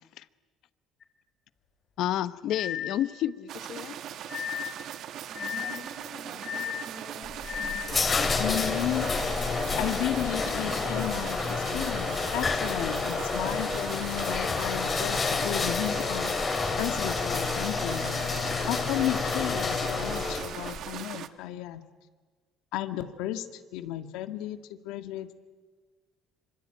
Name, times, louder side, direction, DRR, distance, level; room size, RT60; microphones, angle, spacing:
sound 1, 1.0-1.1 2.5-3.1 4.3-4.8 5.3-5.9 6.4-6.9 7.4-8.0, left 10 dB, 40° left, 3.6 m, -35 dB
voice 1, 2.0-4.0, left 12 dB, 60° left, 15 dB, 1.0 m, -30 dB
sound 2, 3.5-21.3, right 10 dB, 55° right, 1.3 m, -40 dB
voice 2, 5.2-7.8, right 1 dB, 25° right, -4 dB, 6.6 m, -46 dB
sound 3, 7.2-20.8, left 4 dB, 25° left, 2.9 m, -29 dB
voice 3, 8.4-9.1 9.8-16.4 16.8-18.1 18.7-21.8 22.7-25.3, left 13 dB, 90° left, 9 dB, 1.9 m, -33 dB
26.0 x 25.5 x 9.0 m, 1.4 s
cardioid pair, 150°, 0 cm